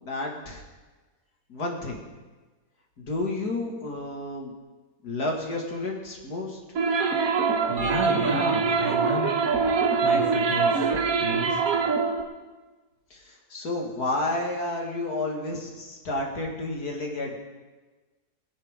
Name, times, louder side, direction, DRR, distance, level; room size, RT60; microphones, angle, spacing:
voice 1, 0.0-0.6 1.5-2.0 3.0-4.5 5.0-6.6 13.1-17.4, left 2 dB, 65° left, 0 dB, 2.6 m, -31 dB
sound 1, 6.7-12.2, right 5 dB, 60° right, 1.4 m, -24 dB
voice 2, 7.7-9.3 10.0-10.9 11.2-11.6, right 1 dB, 80° right, -6 dB, 3.3 m, -31 dB
22.0 x 9.9 x 3.7 m, 1.3 s
omnidirectional pair, 1.8 m